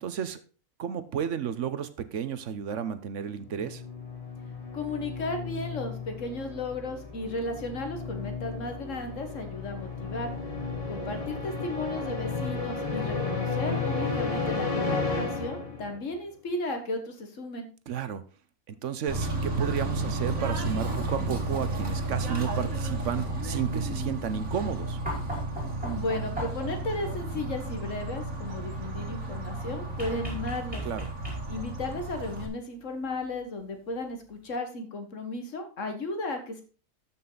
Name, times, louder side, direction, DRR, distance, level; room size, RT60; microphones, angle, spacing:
voice 1, 0.0-0.4 0.8-3.8 17.9-18.2 18.7-25.0 30.8-31.1, right 8 dB, 65° right, 12 dB, 1.1 m, -32 dB
sound 1, 3.4-16.1, left 4 dB, 25° left, 1.6 m, -33 dB
voice 2, 4.7-10.3 10.9-17.7 25.8-30.9 31.5-36.6, left 2 dB, 70° left, 6 dB, 1.8 m, -34 dB
Bird / Train, 19.1-32.5, right 1 dB, 85° right, 2.1 m, -33 dB
sound 2, 25.1-26.8 30.0-31.7 33.3-33.4, right 1 dB, 5° right, 4.5 m, -37 dB
13.0 x 6.0 x 3.9 m, 0.37 s
omnidirectional pair, 1.4 m